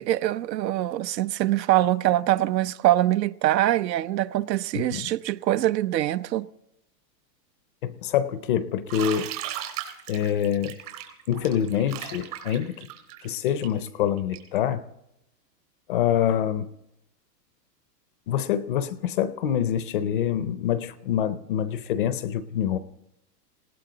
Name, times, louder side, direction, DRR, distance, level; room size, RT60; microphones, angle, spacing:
voice 1, 0.0-6.5, right 14 dB, 80° right, 0.8 m, -23 dB
voice 2, 4.7-5.1 7.8-9.3 10.1-10.8 11.3-12.7 13.2-14.8 15.9-16.7 18.3-22.8, left 9 dB, 35° left, 0.5 m, -26 dB
Bathtub (filling or washing), 8.9-14.6, right 11 dB, 60° right, 3.8 m, -37 dB
19.5 x 18.0 x 3.9 m
supercardioid pair, 160°, 50 cm